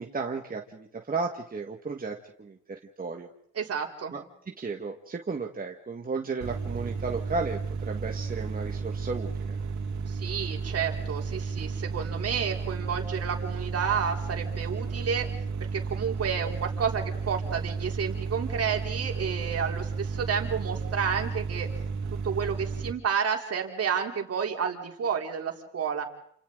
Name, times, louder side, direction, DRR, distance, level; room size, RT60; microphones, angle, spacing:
voice 1, 0.0-3.3 4.1-4.2 4.6-9.6, right 4 dB, 30° right, 2 dB, 1.9 m, -34 dB
voice 2, 3.6-4.1 10.1-15.3 15.7-21.7 22.2-26.1, right 7 dB, 50° right, 2 dB, 3.9 m, -30 dB
sound 1, 6.4-22.9, right 5 dB, 70° right, 3.4 m, -33 dB
29.5 x 27.5 x 4.0 m, 0.67 s
cardioid pair, 90°, 30 cm